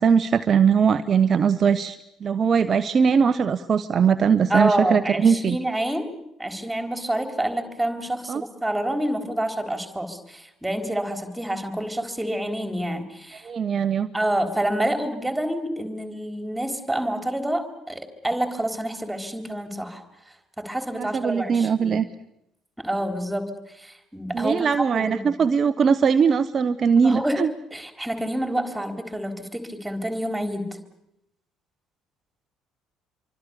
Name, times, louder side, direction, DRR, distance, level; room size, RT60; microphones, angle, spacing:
voice 1, 0.0-5.6 8.3-8.4 13.4-14.1 20.9-22.1 24.3-27.5, right 6 dB, 40° right, 11 dB, 0.9 m, -20 dB
voice 2, 4.5-6.1 6.4-13.5 14.1-20.0 20.6-22.0 22.8-25.4 27.0-30.8, right 1 dB, 5° right, 6 dB, 4.0 m, -28 dB
27.0 x 24.5 x 7.1 m, 0.84 s
figure-of-eight pair, 50°, 0 cm